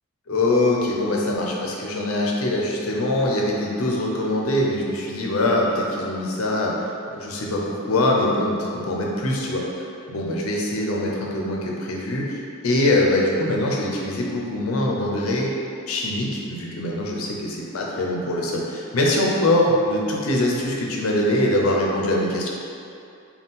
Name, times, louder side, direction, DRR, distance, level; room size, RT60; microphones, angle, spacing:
voice 1, 0.3-9.6 10.1-15.5 15.9-22.5, left 1 dB, 90° left, -2 dB, 0.6 m, -23 dB
4.0 x 2.3 x 3.6 m, 2.6 s
head